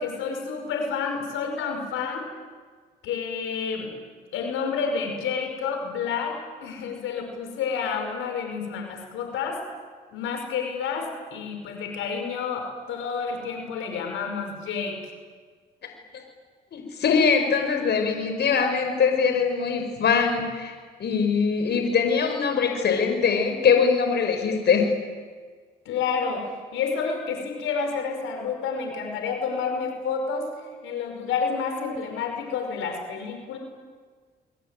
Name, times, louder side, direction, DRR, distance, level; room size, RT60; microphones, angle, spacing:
voice 1, 0.0-2.3 3.0-3.9 4.3-9.6 10.1-15.1 25.9-30.5 30.8-33.6, left 5 dB, 90° left, 4 dB, 5.5 m, -29 dB
voice 2, 16.7-20.7 21.0-24.9, left 6 dB, 60° left, 5 dB, 5.3 m, -22 dB
28.0 x 23.0 x 9.2 m, 1.5 s
cardioid pair, 90°, 20 cm